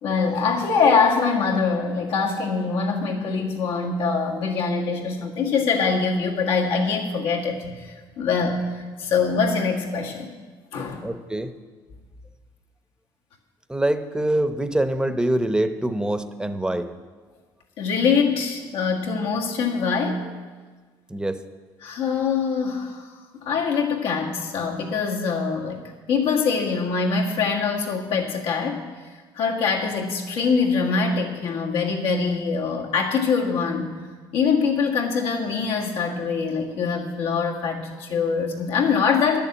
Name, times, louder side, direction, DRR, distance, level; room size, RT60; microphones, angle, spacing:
voice 1, 0.0-10.3 10.7-11.1 17.8-20.3 21.8-23.1 23.4-25.8 26.1-28.8 29.3-33.9 34.3-39.4, left 5 dB, 85° left, -1 dB, 1.8 m, -23 dB
voice 2, 11.0-11.5 13.7-16.9 21.1-21.4, right 1 dB, 10° right, 10 dB, 0.8 m, -24 dB
10.0 x 7.0 x 8.6 m, 1.4 s
cardioid pair, 90°, 10 cm